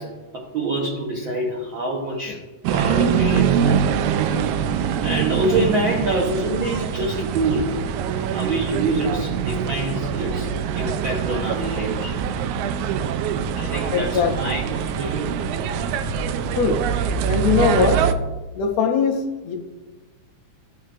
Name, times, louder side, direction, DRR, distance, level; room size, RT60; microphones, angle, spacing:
voice 1, 0.0-2.4 2.7-3.8 4.3-4.4 5.0-7.8 8.3-12.2 13.5-15.4, right 2 dB, 70° right, -3 dB, 1.2 m, -26 dB
sound 1, 2.6-18.1, right 8 dB, 85° right, 1.9 m, -24 dB
voice 2, 13.9-14.5 16.6-16.8 17.3-18.1 18.6-19.6, left 6 dB, 75° left, 3 dB, 1.8 m, -21 dB
13.5 x 5.6 x 2.4 m, 1.2 s
omnidirectional pair, 3.4 m